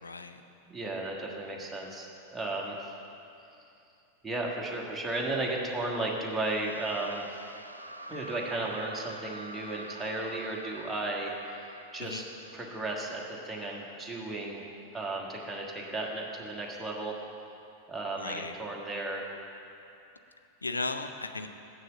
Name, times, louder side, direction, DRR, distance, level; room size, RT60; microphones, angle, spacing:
voice 1, 0.0-0.4 12.0-12.2 18.2-18.5 20.6-21.5, left 3 dB, 80° left, 8 dB, 0.5 m, -35 dB
voice 2, 0.7-2.9 4.2-7.4 8.1-11.6 11.9-12.2 12.5-17.1 17.9-19.3, right 2 dB, 10° right, -3 dB, 1.4 m, -34 dB
sound 1, 6.5-13.8, right 1 dB, 85° right, 0.4 m, -47 dB
7.7 x 6.5 x 7.4 m, 2.7 s
figure-of-eight pair, 90°, 0 cm